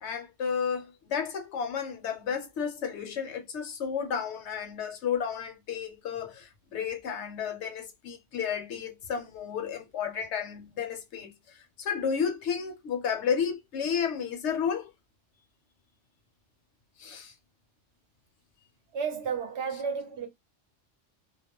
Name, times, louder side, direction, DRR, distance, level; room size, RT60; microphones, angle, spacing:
voice 1, 0.0-14.9 17.0-17.3, left 7 dB, 70° left, 0.9 m, -32 dB
voice 2, 18.9-20.3, right 6 dB, 65° right, 0.8 m, -32 dB
2.3 x 2.0 x 2.8 m
omnidirectional pair, 1.3 m